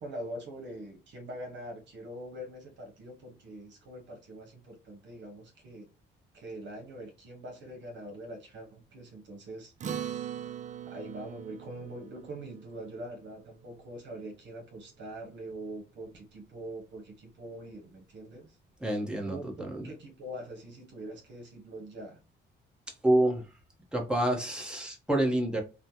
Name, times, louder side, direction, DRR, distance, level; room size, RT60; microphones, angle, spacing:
voice 1, 0.0-5.9 6.3-10.3 10.8-18.6 19.2-22.2, right 1 dB, 65° right, 1.0 m, -43 dB
Acoustic guitar, 9.8-14.5, right 9 dB, 40° right, 0.4 m, -41 dB
voice 2, 18.8-19.9 23.0-23.4 23.9-25.6, right 1 dB, 5° right, 1.0 m, -28 dB
3.2 x 2.1 x 2.7 m
cardioid pair, 90°, 20 cm